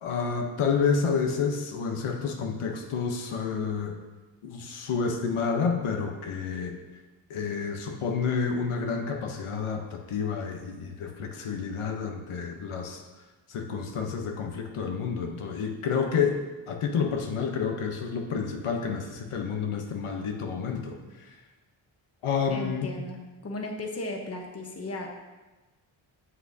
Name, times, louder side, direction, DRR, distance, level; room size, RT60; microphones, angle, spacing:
voice 1, 0.0-4.0 4.4-6.8 7.3-13.0 13.5-16.4 16.7-21.4 22.2-22.9, left 5 dB, 85° left, 2 dB, 1.0 m, -29 dB
voice 2, 22.5-25.1, left 2 dB, 30° left, 1 dB, 1.1 m, -36 dB
8.0 x 7.7 x 2.7 m, 1.2 s
wide cardioid pair, 110°, 49 cm